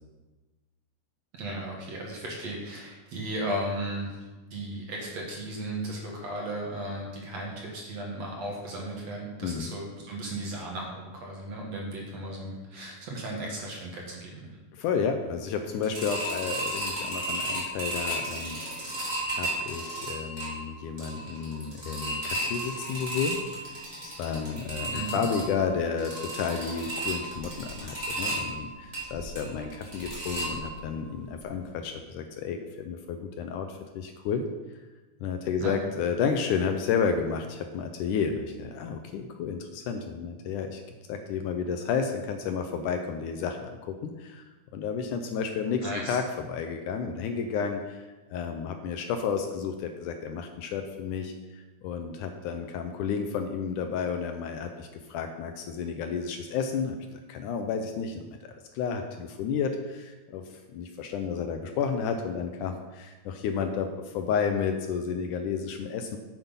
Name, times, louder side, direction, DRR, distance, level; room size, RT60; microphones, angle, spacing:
voice 1, 1.3-4.2 4.5-14.4 24.9-25.2 35.6-35.7 45.8-46.2, right 1 dB, 55° right, -2 dB, 2.4 m, -35 dB
voice 2, 14.7-18.6 18.9-23.4 24.0-34.4 35.2-40.8 41.1-44.4 44.7-66.2, left 6 dB, 75° left, 6 dB, 1.9 m, -31 dB
sound 1, 15.8-31.0 31.4-31.5 31.8-31.9, right 1 dB, 15° right, 2.4 m, -34 dB
9.1 x 8.2 x 5.6 m, 1.2 s
omnidirectional pair, 4.1 m